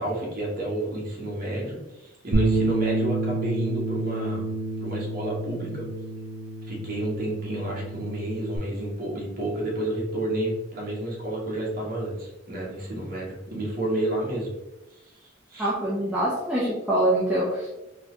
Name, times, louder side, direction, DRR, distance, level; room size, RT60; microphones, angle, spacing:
voice 1, 0.0-4.4 4.8-5.9 6.6-14.5 15.5-15.7 16.2-16.3, right 1 dB, 50° right, -3 dB, 1.1 m, -30 dB
Bass guitar, 2.3-8.6, right 3 dB, 75° right, 0.7 m, -29 dB
voice 2, 15.6-17.7, right 1 dB, 5° right, -9 dB, 0.8 m, -24 dB
3.9 x 2.4 x 2.9 m, 1.0 s
head